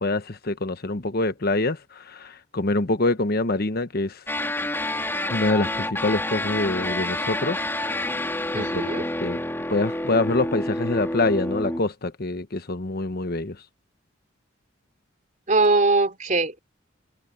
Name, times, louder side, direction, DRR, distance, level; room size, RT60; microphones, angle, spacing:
voice 1, 0.0-4.2 5.3-7.6 8.5-8.7 9.2-9.4 9.7-13.6, left 2 dB, 50° left, 1.1 m, -25 dB
sound 1, 4.3-11.8, left 1 dB, 10° left, 3.6 m, -28 dB
voice 2, 8.5-9.0 15.5-16.6, right 3 dB, 40° right, 3.1 m, -21 dB
head